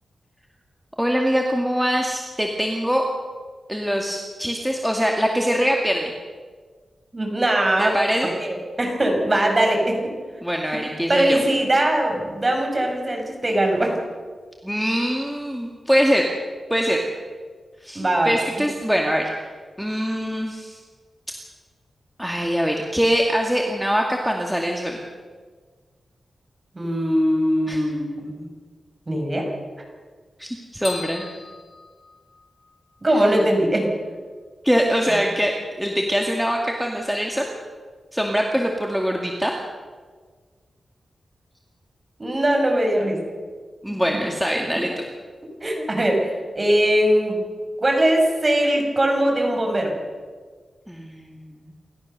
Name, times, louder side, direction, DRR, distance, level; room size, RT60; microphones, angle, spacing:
voice 1, 1.0-3.0 3.7-6.1 7.8-8.3 10.4-11.4 14.6-16.3 16.7-17.1 17.8-19.4 19.8-20.8 22.2-25.0 27.7-27.8 30.4-31.2 34.6-37.5 38.1-39.6 43.8-44.9 50.9-51.7, equal, ahead, 0 dB, 2.3 m, -23 dB
voice 2, 7.1-7.9 8.4-10.1 11.1-14.0 17.9-18.3 26.7-28.5 29.1-29.5 33.0-33.9 42.2-43.2 43.9-44.0 44.7-44.8 45.6-47.4 47.8-49.9, right 1 dB, 30° right, 2 dB, 6.0 m, -21 dB
sound 1, 30.8-32.8, left 5 dB, 60° left, 5.4 m, -38 dB
28.5 x 13.5 x 6.8 m, 1.5 s
wide cardioid pair, 90°, 0 cm